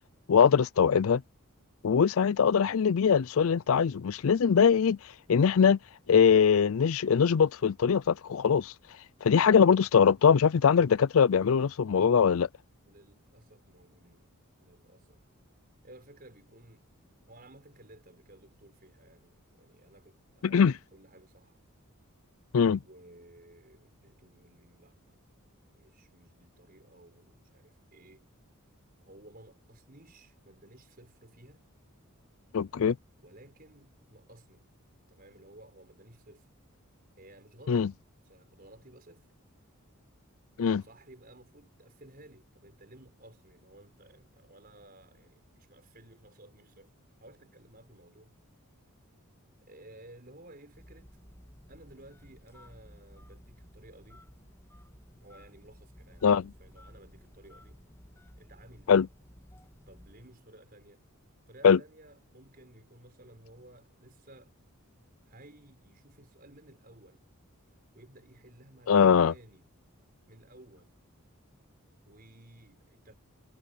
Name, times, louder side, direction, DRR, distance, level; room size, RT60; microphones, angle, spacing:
voice 1, 0.3-1.2 1.8-5.0 5.3-5.8 6.1-8.7 9.2-12.5 20.4-20.7 22.5-22.8 32.5-33.0 37.7-37.9 40.6-40.8 56.2-56.5 58.9-59.1 61.6-61.8 68.9-69.3, left 6 dB, 65° left, 0.4 m, -22 dB
voice 2, 12.8-14.3 14.6-15.2 15.8-16.8 17.3-21.6 22.8-25.2 25.7-28.2 29.0-31.6 33.2-34.7 35.1-36.5 37.2-37.8 38.2-39.3 40.6-46.9 47.2-48.3 49.6-51.2 51.7-54.3 55.2-57.8 58.4-59.0 59.9-61.0 61.5-64.6 65.3-67.3 67.9-69.7 70.3-71.0 72.1-73.1, right 1 dB, 40° right, 5.5 m, -55 dB
Telephone, 50.7-60.4, equal, 10° left, 2.5 m, -55 dB
head